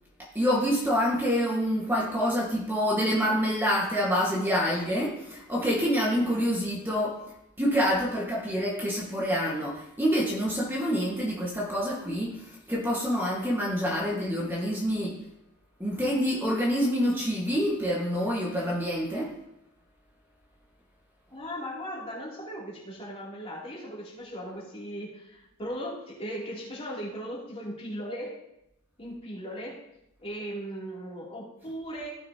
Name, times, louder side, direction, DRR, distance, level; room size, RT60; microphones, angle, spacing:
voice 1, 0.3-7.2 7.6-15.2 15.8-19.3, equal, 10° right, -5 dB, 1.6 m, -27 dB
voice 2, 21.3-28.4 29.0-29.8 30.2-32.1, equal, 30° left, -5 dB, 3.0 m, -38 dB
16.0 x 6.5 x 2.9 m, 0.84 s
head